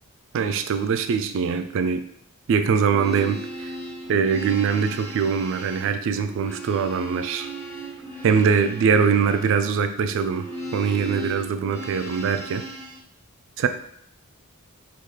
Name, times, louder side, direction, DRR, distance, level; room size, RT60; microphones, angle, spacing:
voice 1, 0.3-2.1 2.5-3.7 4.1-7.5 8.2-12.6 13.6-13.7, right 6 dB, 60° right, 9 dB, 0.3 m, -22 dB
sound 1, 2.7-13.0, right 1 dB, 10° left, 1.2 m, -37 dB
3.6 x 2.4 x 3.2 m, 0.67 s
head